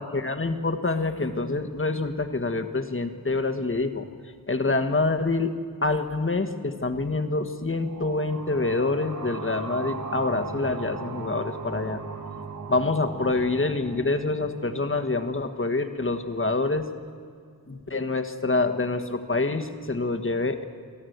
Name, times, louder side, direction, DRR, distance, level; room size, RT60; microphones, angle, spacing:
voice 1, 0.0-4.1 4.5-5.5 5.8-12.0 12.7-16.9 17.7-20.6, left 3 dB, 35° left, 6 dB, 1.5 m, -26 dB
sound 1, 7.7-15.1, right 4 dB, 50° right, 1.9 m, -38 dB
29.0 x 12.0 x 8.1 m, 2.2 s
wide cardioid pair, 75°, 37 cm